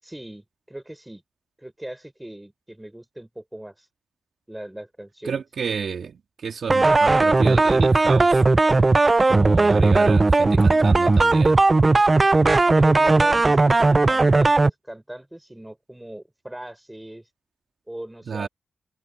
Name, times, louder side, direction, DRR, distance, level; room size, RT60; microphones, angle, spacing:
voice 1, 0.0-1.2 1.6-3.9 4.5-5.4 12.7-17.3 17.9-18.5, right 1 dB, 10° right, 4.9 m, -39 dB
voice 2, 5.2-8.4 9.3-11.6 18.3-18.5, right 6 dB, 70° right, 1.9 m, -30 dB
sound 1, 6.7-14.7, right 3 dB, 35° right, 0.4 m, -17 dB
cardioid pair, 55°, 0 cm